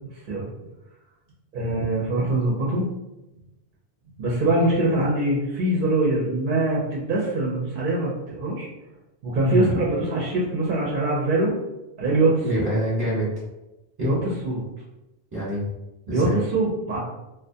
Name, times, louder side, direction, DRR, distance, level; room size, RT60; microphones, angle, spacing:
voice 1, 1.5-2.9 4.2-8.7 9.2-11.6 12.0-12.4 14.0-14.2 14.4-14.6 16.1-17.0, right 2 dB, 55° right, -4 dB, 0.6 m, -23 dB
voice 2, 9.4-9.8 12.4-13.3 14.0-14.1 15.3-15.7 16.1-16.4, equal, 15° right, -10 dB, 0.9 m, -25 dB
2.3 x 2.1 x 2.6 m, 0.95 s
omnidirectional pair, 1.2 m